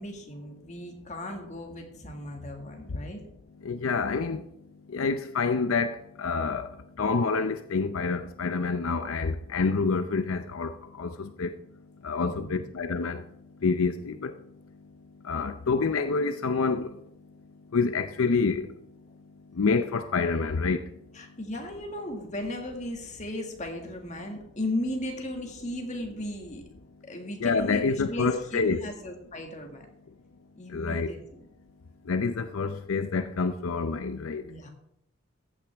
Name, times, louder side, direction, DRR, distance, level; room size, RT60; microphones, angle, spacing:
voice 1, 0.0-3.2 12.3-12.7 21.1-26.6 27.0-29.9 30.6-31.2 34.4-34.7, left 1 dB, 35° left, 1.8 m, -36 dB
voice 2, 3.6-21.4 27.4-28.9 30.7-31.2 32.0-34.5, left 4 dB, 80° left, 0.6 m, -28 dB
14.5 x 8.9 x 3.5 m
head